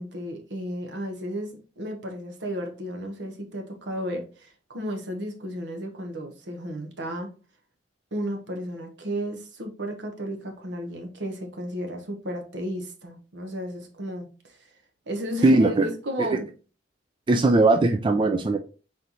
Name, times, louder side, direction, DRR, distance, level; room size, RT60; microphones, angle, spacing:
voice 1, 0.0-7.3 8.1-14.7 15.1-16.5, equal, 75° right, 1.1 m, -33 dB
voice 2, 15.4-15.9 16.2-16.4 17.3-18.6, right 2 dB, 25° right, 0.3 m, -19 dB
4.2 x 4.0 x 3.0 m
head